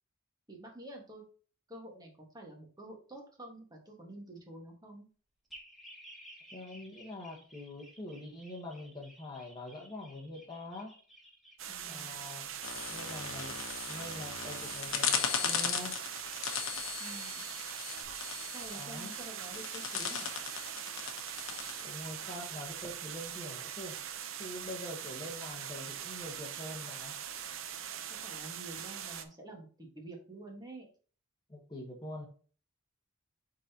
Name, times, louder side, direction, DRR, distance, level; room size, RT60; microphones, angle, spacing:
voice 1, 0.5-1.2 1.7-5.1 11.7-12.2 17.0-17.4 18.5-20.3 28.1-30.9, right 1 dB, 20° right, 1 dB, 1.6 m, -48 dB
sound 1, 5.5-18.0, right 1 dB, ahead, 2.1 m, -56 dB
voice 2, 6.5-10.9 11.8-12.5 12.9-13.6 13.9-16.0 18.7-19.1 21.8-24.0 24.4-27.2 31.5-32.3, left 1 dB, 20° left, -1 dB, 1.2 m, -44 dB
sound 2, 11.6-29.2, right 9 dB, 70° right, 0.7 m, -42 dB
sound 3, 12.6-22.5, left 7 dB, 75° left, 1.0 m, -37 dB
9.0 x 4.0 x 2.9 m, 0.40 s
head